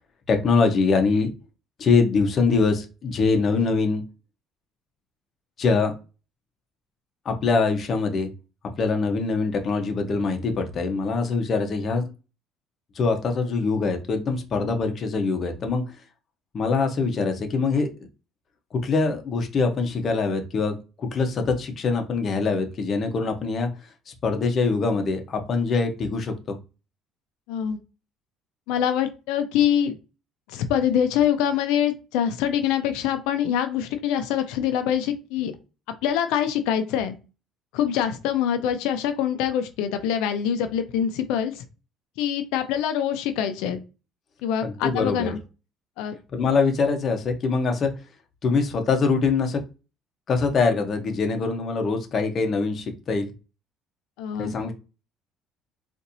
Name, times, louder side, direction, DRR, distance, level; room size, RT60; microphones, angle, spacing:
voice 1, 0.3-1.3 1.8-4.0 5.6-5.9 7.2-8.3 8.8-12.1 12.9-15.8 16.5-17.9 18.7-23.7 24.2-26.6 44.6-45.3 46.3-47.9 48.4-49.6 50.3-53.3 54.4-54.7, left 4 dB, 40° left, 5 dB, 0.8 m, -23 dB
voice 2, 27.5-27.8 28.7-30.0 30.5-35.5 36.0-37.2 37.7-41.6 42.2-43.8 44.4-45.4 46.0-46.1 54.2-54.5, left 9 dB, 90° left, 8 dB, 0.6 m, -24 dB
4.1 x 2.6 x 2.6 m, 0.30 s
cardioid pair, 125°, 0 cm